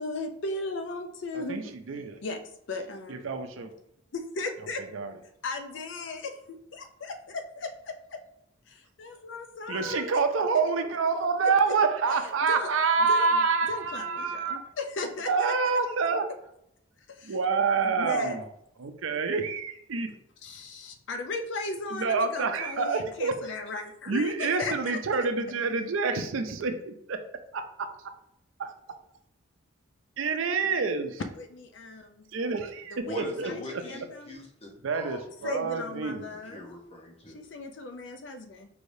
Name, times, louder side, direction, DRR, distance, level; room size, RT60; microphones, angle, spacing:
voice 1, 0.0-1.6 2.2-2.4 2.7-3.3 4.1-4.8 5.4-6.3 6.7-8.2 8.7-10.1 12.5-12.7 13.1-15.5 17.1-17.3 17.8-18.4 20.4-25.0 31.4-32.3 32.9-34.4 35.4-36.6 37.3-38.7, left 3 dB, 65° left, 7 dB, 0.5 m, -36 dB
voice 2, 1.5-2.2 3.1-3.7 4.9-5.1 9.7-14.6 15.3-16.3 17.2-18.4 18.8-20.1 21.9-23.4 24.1-27.2 27.5-28.1 28.6-28.7 30.2-31.2 32.3-33.8 34.8-36.2, right 4 dB, 90° right, 7 dB, 0.5 m, -27 dB
voice 3, 33.1-35.3 36.3-37.4, left 1 dB, 30° left, -1 dB, 0.8 m, -41 dB
4.6 x 3.2 x 2.6 m, 0.75 s
head